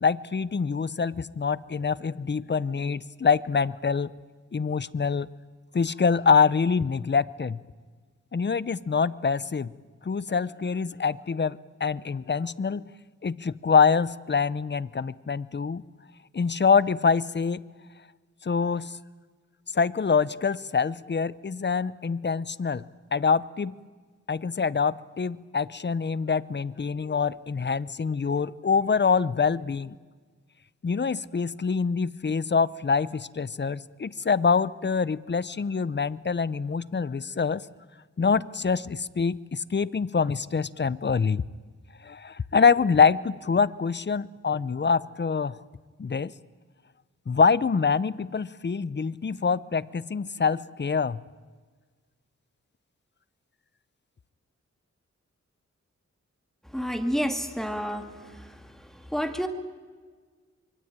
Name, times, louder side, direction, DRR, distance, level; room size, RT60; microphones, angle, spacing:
voice 1, 0.0-4.1 4.5-5.3 5.7-7.6 8.3-9.7 10.0-12.8 13.2-15.8 16.3-17.6 18.4-18.9 19.7-22.8 23.1-23.7 24.3-30.0 30.8-37.6 38.2-41.4 42.0-45.6 46.0-46.3 47.3-51.2, left 5 dB, 40° left, 19 dB, 0.7 m, -25 dB
voice 2, 56.7-58.6 59.1-59.5, equal, ahead, 6 dB, 2.5 m, -29 dB
25.0 x 22.5 x 9.0 m, 1.5 s
wide cardioid pair, 75°, 29 cm